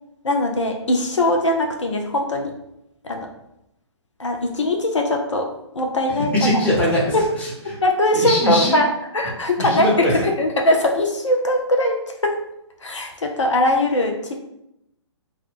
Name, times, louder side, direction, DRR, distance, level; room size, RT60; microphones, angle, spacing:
voice 1, 0.2-2.5 3.0-3.3 4.2-5.5 5.7-6.3 7.1-7.3 7.8-8.9 9.1-12.0 12.2-12.3 12.8-14.3, left 1 dB, 85° left, 2 dB, 0.5 m, -20 dB
voice 2, 6.1-7.8 8.1-8.8 9.6-10.1, left 1 dB, 10° left, -6 dB, 0.8 m, -21 dB
2.2 x 2.2 x 3.3 m, 0.82 s
figure-of-eight pair, 135°, 15 cm